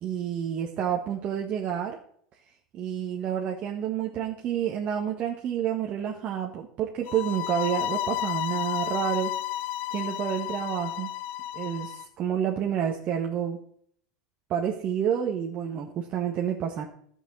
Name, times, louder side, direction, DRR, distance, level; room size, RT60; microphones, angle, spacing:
voice 1, 0.0-2.0 2.7-9.3 9.9-11.1 11.5-13.6 14.5-16.9, right 9 dB, 45° right, 0 dB, 1.6 m, -29 dB
sound 1, 7.1-12.0, left 13 dB, 55° left, 0.6 m, -32 dB
13.0 x 6.4 x 6.3 m, 0.63 s
hypercardioid pair, 85°, 3 cm